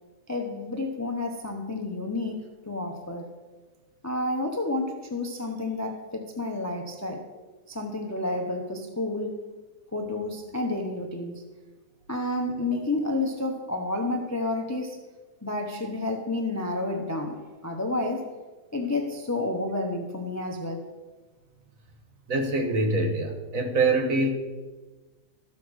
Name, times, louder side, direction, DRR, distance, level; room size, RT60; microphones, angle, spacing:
voice 1, 0.3-3.3 4.0-7.3 7.7-9.5 9.9-11.4 12.1-15.0 15.4-18.3 18.7-20.9, left 2 dB, 15° left, 3 dB, 0.6 m, -30 dB
voice 2, 22.3-24.3, right 2 dB, 55° right, 3 dB, 1.6 m, -24 dB
13.5 x 5.8 x 6.3 m, 1.3 s
omnidirectional pair, 1.8 m